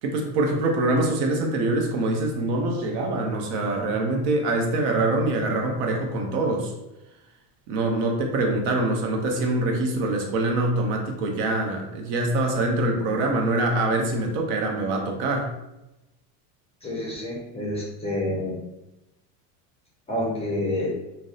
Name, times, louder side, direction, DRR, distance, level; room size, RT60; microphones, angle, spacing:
voice 1, 0.0-6.7 7.7-15.5, right 2 dB, 60° right, 1 dB, 0.7 m, -24 dB
voice 2, 16.8-18.6 20.1-20.9, left 1 dB, 15° left, -4 dB, 0.4 m, -28 dB
2.6 x 2.0 x 2.4 m, 0.95 s
supercardioid pair, 120°, 46 cm